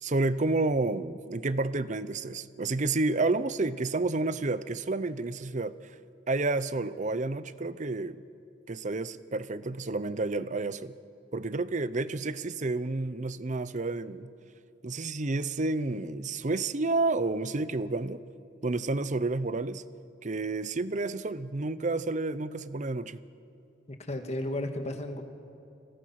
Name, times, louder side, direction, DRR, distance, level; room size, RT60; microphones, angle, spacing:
voice 1, 0.0-6.0 6.3-8.2 8.7-10.9 11.3-14.3 14.8-18.2 18.6-19.8 20.2-23.2, right 3 dB, 40° right, 15 dB, 0.7 m, -30 dB
voice 2, 24.1-25.2, left 1 dB, 35° left, 5 dB, 1.9 m, -33 dB
30.0 x 20.5 x 5.9 m, 2.7 s
head